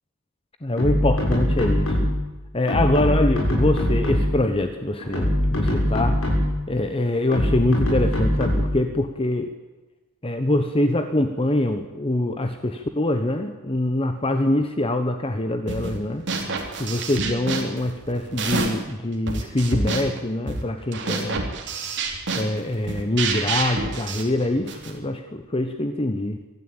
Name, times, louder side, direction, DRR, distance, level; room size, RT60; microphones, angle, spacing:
voice 1, 0.6-2.1 2.5-6.2 6.7-9.5 10.2-16.2 16.8-21.4 22.3-26.4, left 1 dB, 25° left, 7 dB, 1.2 m, -24 dB
sound 1, 0.8-2.3 2.7-4.5 5.0-6.7 7.3-8.8, equal, 65° left, 7.2 m, -22 dB
sound 2, 15.7-16.0 16.3-18.9 19.3-25.0, right 3 dB, 55° right, 3.6 m, -28 dB
24.5 x 13.5 x 9.1 m, 1.1 s
head